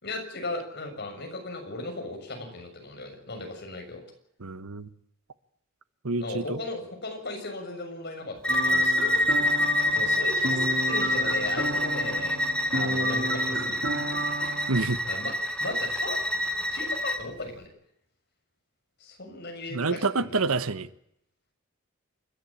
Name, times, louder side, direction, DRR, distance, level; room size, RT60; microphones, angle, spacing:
voice 1, 0.0-4.0 6.2-9.6 9.9-12.4 12.7-13.8 15.0-15.3 15.6-16.2 16.7-17.7 19.0-20.6, left 2 dB, 50° left, 6.8 m, -37 dB
voice 2, 4.4-4.9 6.0-6.6 14.7-15.0 19.7-20.9, right 3 dB, 85° right, 1.2 m, -27 dB
Bowed string instrument, 8.4-17.2, left 1 dB, 5° left, 1.4 m, -27 dB
sound 1, 8.5-14.9, right 1 dB, 55° right, 2.7 m, -33 dB
28.5 x 13.5 x 8.7 m
head